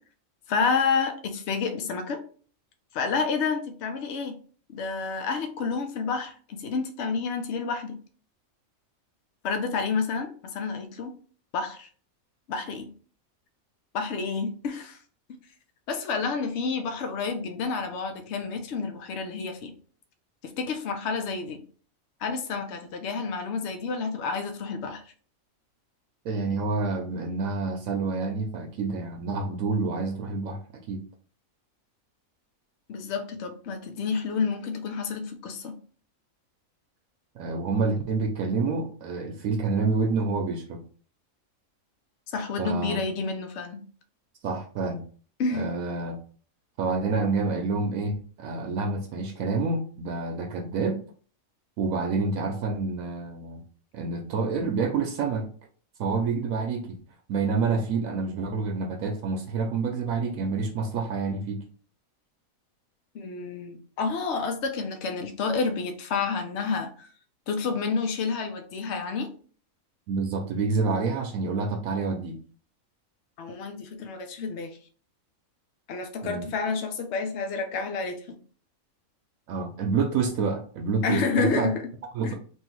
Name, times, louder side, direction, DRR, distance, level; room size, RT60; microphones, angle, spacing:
voice 1, 0.5-2.2 2.9-4.4 4.7-8.0 9.4-11.1 11.5-11.9 12.5-12.9 13.9-15.0 15.9-19.7 20.4-21.6 22.2-25.0 32.9-35.8 42.3-43.8 45.4-45.7 63.1-67.1 67.5-69.3 73.4-74.8 75.9-78.4 81.0-81.8 82.2-82.3, left 4 dB, 60° left, 5 dB, 0.9 m, -29 dB
voice 2, 26.2-30.6 30.9-31.0 37.4-40.8 42.6-43.0 44.4-45.0 45.5-46.2 46.8-51.0 51.8-53.6 53.9-55.5 56.0-57.0 57.3-61.6 70.1-72.4 76.2-76.5 79.5-81.7 82.1-82.3, right 4 dB, 75° right, 4 dB, 1.0 m, -28 dB
3.1 x 2.7 x 4.4 m, 0.43 s
omnidirectional pair, 1.5 m